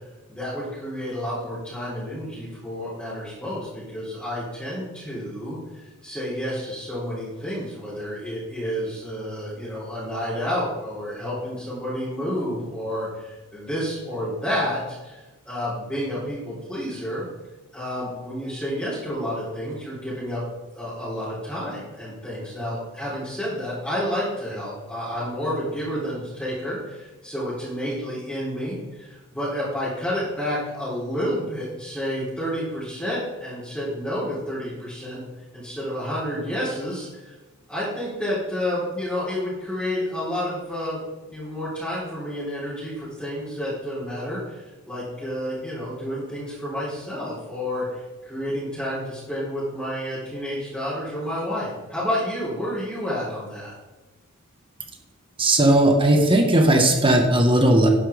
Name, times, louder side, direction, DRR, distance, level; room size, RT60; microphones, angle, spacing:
voice 1, 0.3-17.2 17.7-20.4 20.7-35.2 35.5-37.3 37.7-41.0 41.3-53.7, equal, 5° left, -11 dB, 3.9 m, -30 dB
voice 2, 55.4-57.9, right 1 dB, 25° right, 3 dB, 1.6 m, -17 dB
11.5 x 10.0 x 3.7 m, 1.2 s
head